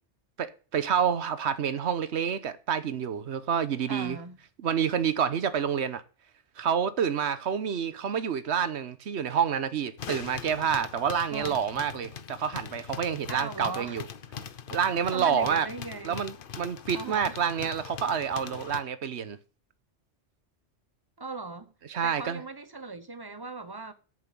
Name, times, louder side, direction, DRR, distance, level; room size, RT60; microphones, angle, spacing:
voice 1, 0.4-4.2 4.6-6.0 6.6-14.0 14.7-15.7 16.0-19.4 21.9-22.4, right 7 dB, 70° right, 1.2 m, -28 dB
voice 2, 3.9-4.4 11.3-11.6 13.3-14.0 15.1-16.2 16.9-17.4 21.2-21.7 22.0-23.9, right 3 dB, 25° right, 0.8 m, -38 dB
sound 1, 10.0-18.8, left 7 dB, 55° left, 0.9 m, -41 dB
8.4 x 7.1 x 8.4 m
omnidirectional pair, 1.2 m